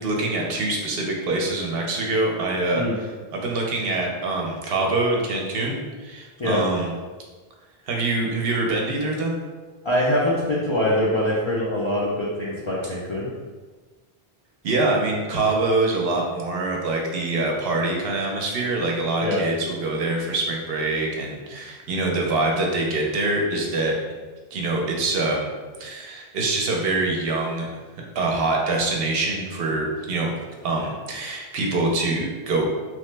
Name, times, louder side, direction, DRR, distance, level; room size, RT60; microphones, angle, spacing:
voice 1, 0.0-6.9 7.9-9.4 14.6-24.0 24.5-25.5 25.8-27.7 28.1-30.3 30.6-32.7, right 2 dB, 70° right, 0 dB, 0.8 m, -24 dB
voice 2, 9.8-13.3 19.2-19.4, left 1 dB, 50° left, -6 dB, 0.3 m, -23 dB
3.0 x 2.0 x 3.2 m, 1.4 s
omnidirectional pair, 1.0 m